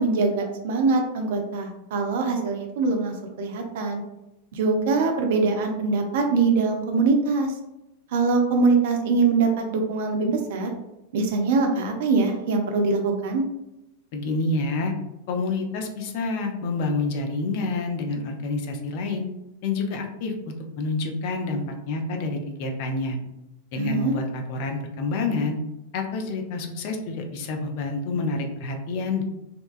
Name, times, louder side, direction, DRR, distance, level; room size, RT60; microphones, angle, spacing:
voice 1, 0.0-4.0 4.5-7.5 8.1-10.7 11.1-13.4 23.8-24.1, right 4 dB, 55° right, 3 dB, 0.4 m, -23 dB
voice 2, 14.1-14.9 15.3-19.3 19.6-23.2 23.7-25.6 25.9-29.2, left 3 dB, 45° left, 3 dB, 0.4 m, -28 dB
2.8 x 2.2 x 2.4 m, 0.92 s
figure-of-eight pair, 90°, 0 cm